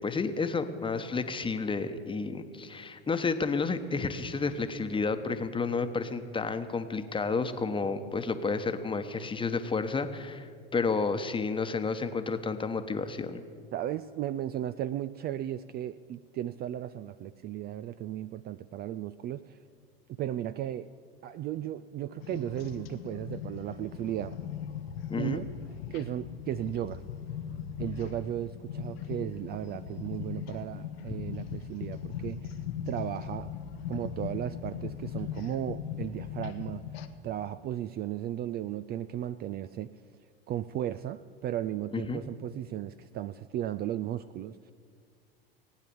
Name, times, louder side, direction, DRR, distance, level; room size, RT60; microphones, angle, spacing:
voice 1, 0.0-13.4 25.1-25.4 41.9-42.2, left 4 dB, 15° left, 8 dB, 1.1 m, -31 dB
voice 2, 13.7-19.6 20.2-20.9 21.2-24.4 25.2-25.5 25.9-27.0 27.8-32.6 32.9-33.5 33.9-39.9 40.5-44.7, right 12 dB, 35° right, 14 dB, 0.4 m, -35 dB
sound 1, 22.2-37.1, left 8 dB, 80° left, 1.1 m, -39 dB
18.5 x 9.1 x 7.0 m, 2.1 s
hypercardioid pair, 90°, 30 cm